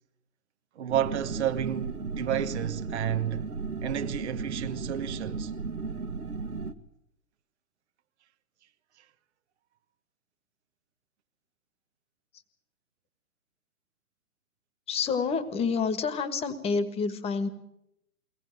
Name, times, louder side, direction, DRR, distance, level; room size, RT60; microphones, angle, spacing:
voice 1, 0.8-3.5 3.8-5.5, right 10 dB, 50° right, 1.3 m, -31 dB
sound 1, 0.9-6.7, right 4 dB, 75° right, 1.7 m, -35 dB
voice 2, 14.9-17.5, left 5 dB, 15° left, 1.5 m, -28 dB
23.0 x 18.5 x 9.2 m
figure-of-eight pair, 120°, 45 cm